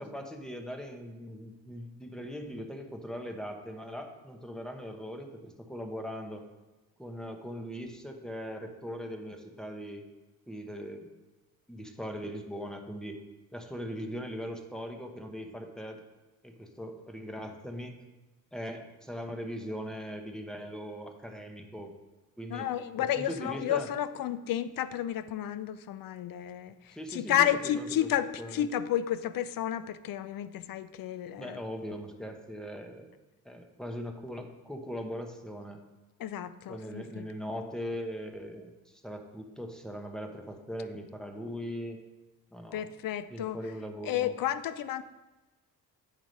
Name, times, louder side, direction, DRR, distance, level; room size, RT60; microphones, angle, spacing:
voice 1, 0.0-6.4 7.0-10.1 10.5-11.2 11.7-13.2 13.5-16.0 16.4-17.9 18.5-21.9 22.4-22.7 23.0-23.9 26.9-27.5 27.7-28.1 28.4-28.6 31.4-33.1 33.4-35.8 36.7-42.0 42.5-42.9 43.3-44.3, equal, ahead, 4 dB, 0.9 m, -40 dB
voice 2, 22.5-31.6 36.2-37.3 42.7-43.6 44.0-45.0, left 11 dB, 80° left, 13 dB, 0.6 m, -31 dB
9.2 x 4.8 x 5.3 m, 1.1 s
cardioid pair, 110°, 34 cm